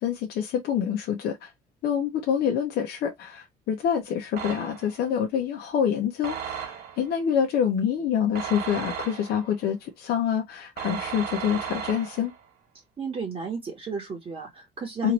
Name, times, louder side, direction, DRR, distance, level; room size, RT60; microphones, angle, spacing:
voice 1, 0.0-1.5 1.8-12.3 15.0-15.1, left 8 dB, 70° left, 0.8 m, -26 dB
sound 1, 4.4-5.0 6.2-7.1 8.4-9.6 10.8-12.4, right 8 dB, 70° right, 1.2 m, -35 dB
voice 2, 13.0-15.1, right 5 dB, 35° right, 1.0 m, -33 dB
2.9 x 2.6 x 3.0 m
cardioid pair, 110°, 17 cm